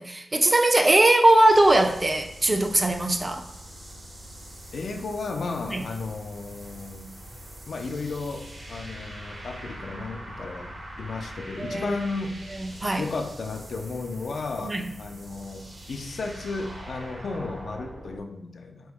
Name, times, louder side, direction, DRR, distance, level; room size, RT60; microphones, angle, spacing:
voice 1, 0.0-3.5 5.7-5.8 11.6-12.0 12.6-13.1 14.6-14.9, right 1 dB, 25° right, 5 dB, 0.4 m, -20 dB
sound 1, 1.5-18.2, right 1 dB, 75° right, 1.3 m, -43 dB
voice 2, 4.7-7.1 7.7-12.4 13.0-18.9, left 3 dB, 80° left, 4 dB, 0.5 m, -34 dB
4.1 x 3.0 x 3.5 m, 0.81 s
wide cardioid pair, 90°, 0 cm